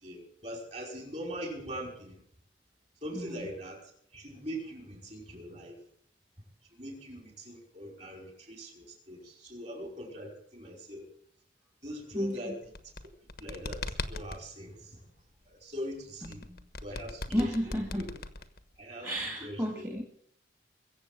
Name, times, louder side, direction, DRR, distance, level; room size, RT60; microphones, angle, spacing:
voice 1, 0.0-2.2 3.0-3.8 4.1-5.8 6.7-11.1 11.8-12.6 13.4-15.0 15.5-16.4 16.8-18.1 18.8-19.1 19.4-19.9, equal, 40° right, 2 dB, 5.4 m, -41 dB
voice 2, 3.1-3.5 12.1-12.5 16.2-16.6 17.3-18.1 19.0-20.0, equal, 15° right, 1 dB, 2.1 m, -33 dB
sound 1, 12.6-14.4 16.2-18.8, left 3 dB, 55° left, 1.2 m, -39 dB
22.5 x 8.0 x 7.7 m, 0.65 s
head